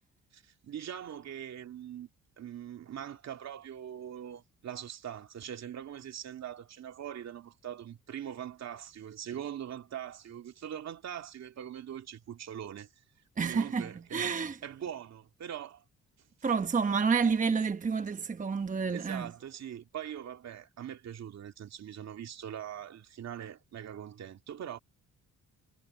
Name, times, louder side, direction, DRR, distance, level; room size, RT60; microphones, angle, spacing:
voice 1, 0.3-2.1 2.4-12.9 13.4-14.3 14.6-15.8 18.9-24.8, right 9 dB, 60° right, 2.5 m, -42 dB
voice 2, 13.4-14.6 16.4-19.3, right 5 dB, 25° right, 1.0 m, -29 dB
cardioid pair, 90°, 30 cm